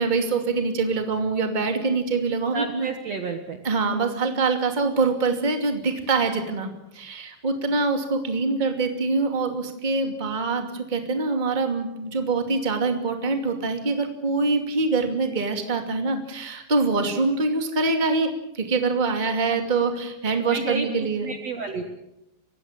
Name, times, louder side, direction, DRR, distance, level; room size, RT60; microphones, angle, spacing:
voice 1, 0.0-2.9 3.6-6.7 6.9-18.3 18.5-21.3, right 3 dB, 20° right, 5 dB, 1.2 m, -24 dB
voice 2, 2.5-3.6 20.5-21.9, right 4 dB, 85° right, 6 dB, 1.4 m, -31 dB
29.5 x 16.0 x 7.5 m, 0.90 s
omnidirectional pair, 5.3 m